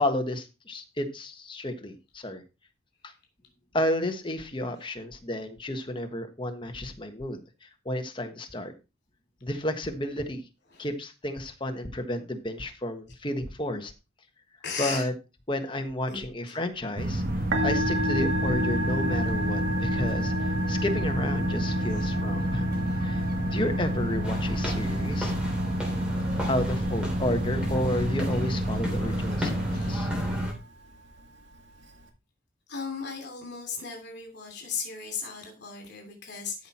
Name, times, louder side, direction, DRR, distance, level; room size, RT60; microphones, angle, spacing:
voice 1, 0.0-2.4 3.0-3.1 3.7-8.7 9.4-10.4 10.8-13.9 14.8-15.1 15.5-22.7 23.0-25.3 26.5-30.1, left 1 dB, 25° left, 6 dB, 1.3 m, -32 dB
voice 2, 14.6-15.1 16.1-16.2 16.5-16.6 19.9-20.0 22.0-22.1 22.8-23.1 29.6-29.9 32.7-36.7, left 5 dB, 55° left, 3 dB, 2.9 m, -36 dB
sound 1, 17.0-30.5, equal, 45° right, 2.0 m, -28 dB
Musical instrument, 17.4-32.1, equal, 65° right, 2.1 m, -35 dB
sound 2, 24.2-30.5, left 1 dB, 5° right, 3.5 m, -37 dB
13.0 x 5.7 x 4.3 m, 0.29 s
head